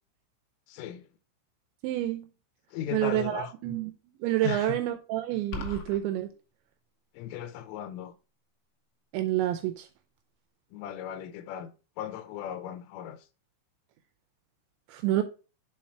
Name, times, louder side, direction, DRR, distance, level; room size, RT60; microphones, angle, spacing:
voice 1, 0.7-1.1 2.7-3.5 4.4-4.8 7.1-8.1 10.7-11.7 12.0-13.2, left 10 dB, 90° left, 3.3 m, -37 dB
voice 2, 1.8-2.3 2.9-3.9 4.2-6.3 9.1-9.9 14.9-15.2, right 14 dB, 85° right, 2.7 m, -28 dB
sound 1, 5.5-6.0, left 3 dB, 75° left, 3.3 m, -36 dB
7.5 x 4.0 x 4.6 m
omnidirectional pair, 5.6 m